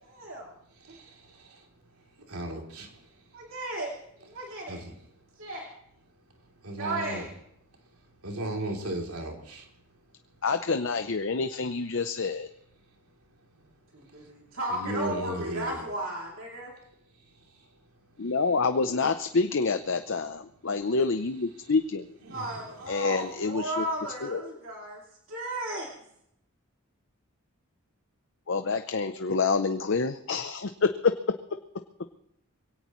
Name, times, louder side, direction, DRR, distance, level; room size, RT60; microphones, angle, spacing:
voice 1, 0.1-0.5 0.9-1.0 3.3-3.9 4.2-4.8 5.4-5.7 6.8-7.3 13.9-16.7 22.3-25.0 25.3-25.9, right 1 dB, 65° right, -3 dB, 2.9 m, -35 dB
voice 2, 2.3-2.9 4.7-4.9 6.6-7.2 8.2-9.6 14.7-15.8 22.2-22.4, right 1 dB, 80° right, 1 dB, 3.2 m, -34 dB
voice 3, 10.4-12.5 18.2-22.0 22.9-23.8 24.2-24.4 28.5-31.1, left 4 dB, 55° left, 8 dB, 0.7 m, -27 dB
23.0 x 17.5 x 3.1 m, 0.74 s
head